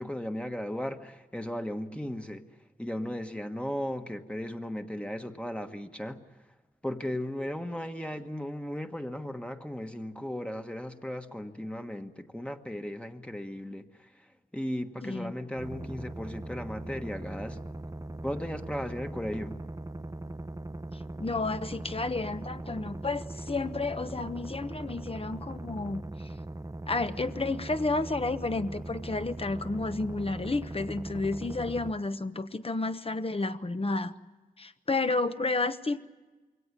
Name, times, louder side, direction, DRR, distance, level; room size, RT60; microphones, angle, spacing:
voice 1, 0.0-2.4 2.8-6.2 6.8-13.9 14.5-17.6 18.2-19.6, equal, 5° left, 5 dB, 1.3 m, -36 dB
voice 2, 15.0-15.3 21.2-26.0 26.9-34.1 34.6-36.0, left 3 dB, 40° left, 10 dB, 1.0 m, -31 dB
sound 1, 15.6-31.9, right 2 dB, 20° right, 0.8 m, -40 dB
23.0 x 17.5 x 9.7 m, 1.2 s
wide cardioid pair, 60°, 15 cm